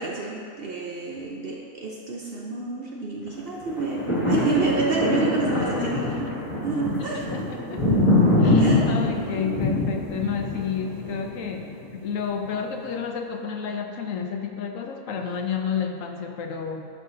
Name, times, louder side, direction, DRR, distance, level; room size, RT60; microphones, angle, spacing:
voice 1, 0.0-6.3 6.6-7.3 7.7-7.8 8.4-8.9 9.4-9.8, right 3 dB, 55° right, -2 dB, 0.7 m, -29 dB
sound 1, 3.6-11.9 12.4-12.5, left 1 dB, 20° left, 1.7 m, -24 dB
voice 2, 5.2-6.3 7.0-8.0 8.4-16.9, left 6 dB, 70° left, 4 dB, 1.0 m, -31 dB
12.0 x 5.9 x 2.7 m, 2.4 s
omnidirectional pair, 1.5 m